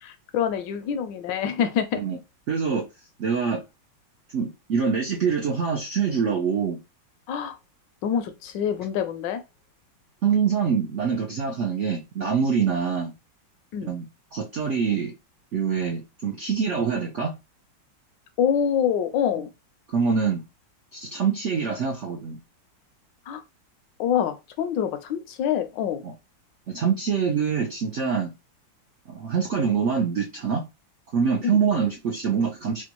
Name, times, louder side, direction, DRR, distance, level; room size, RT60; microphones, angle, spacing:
voice 1, 0.0-2.0 7.3-7.6 8.0-9.4 13.7-13.9 18.4-19.5 23.3-23.4 24.0-26.0 31.4-31.6, left 8 dB, 75° left, 1.2 m, -26 dB
voice 2, 2.5-2.9 3.2-3.6 4.3-6.8 10.2-13.1 13.8-14.1 14.3-15.1 15.5-17.3 19.9-20.4 20.9-22.4 26.0-26.1 26.7-28.3 29.1-30.6 31.1-32.8, right 6 dB, 75° right, 0.6 m, -25 dB
4.3 x 2.3 x 2.9 m
omnidirectional pair, 2.1 m